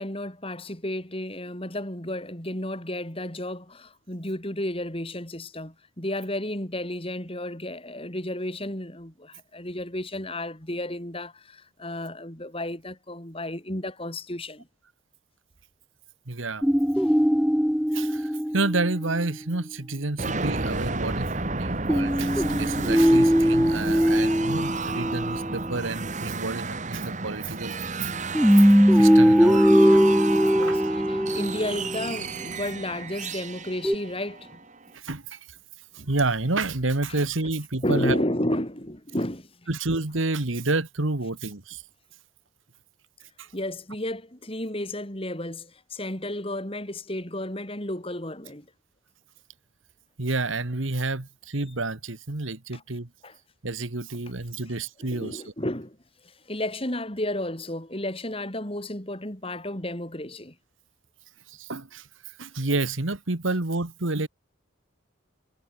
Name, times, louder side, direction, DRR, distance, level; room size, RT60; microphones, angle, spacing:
voice 1, 0.0-14.7 17.0-17.2 30.6-34.6 37.1-37.2 37.8-39.5 43.5-48.7 52.7-52.8 53.2-53.3 55.0-56.0 56.5-60.5, left 1 dB, 30° left, 3.8 m, -32 dB
voice 2, 16.3-16.6 17.9-28.2 28.5-28.7 28.9-30.0 30.6-30.8 34.9-35.4 35.9-38.2 39.7-41.8 43.4-43.5 50.2-53.1 53.6-55.5 61.5-62.1 62.4-64.3, right 2 dB, 80° right, 1.8 m, -29 dB
sound 1, 16.6-19.3 21.9-25.7 28.3-32.1 33.8-33.9, equal, ahead, 0.7 m, -20 dB
sound 2, 20.2-34.9, right 3 dB, 40° right, 1.8 m, -32 dB
head